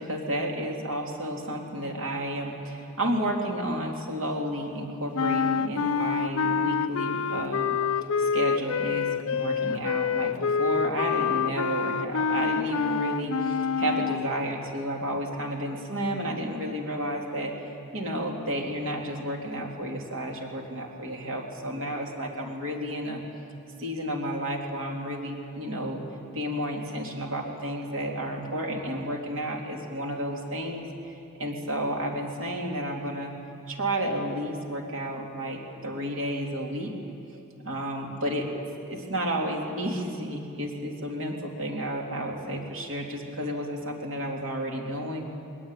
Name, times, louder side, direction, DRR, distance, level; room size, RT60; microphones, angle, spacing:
voice 1, 0.0-7.8 8.2-23.2 23.8-26.0 26.3-31.1 31.4-33.3 33.7-36.9 37.6-38.5 38.9-45.3, equal, 60° right, 0 dB, 3.2 m, -31 dB
sound 1, 5.1-14.3, left 6 dB, 70° left, 0.5 m, -27 dB
21.0 x 19.5 x 9.2 m, 2.7 s
head